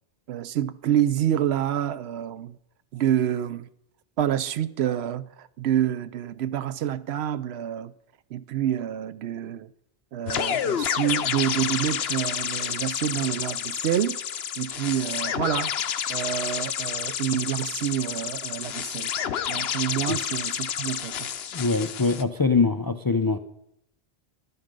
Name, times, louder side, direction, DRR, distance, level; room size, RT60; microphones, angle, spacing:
voice 1, 0.3-2.6 2.9-3.7 4.2-7.9 8.3-9.7 10.1-14.2 14.6-15.7 16.1-19.1 19.5-21.3, right 10 dB, 80° right, 0.9 m, -27 dB
sound 1, 10.3-22.2, left 8 dB, 75° left, 0.9 m, -29 dB
voice 2, 21.5-23.4, left 4 dB, 40° left, 0.3 m, -23 dB
11.5 x 11.0 x 5.2 m
omnidirectional pair, 1.1 m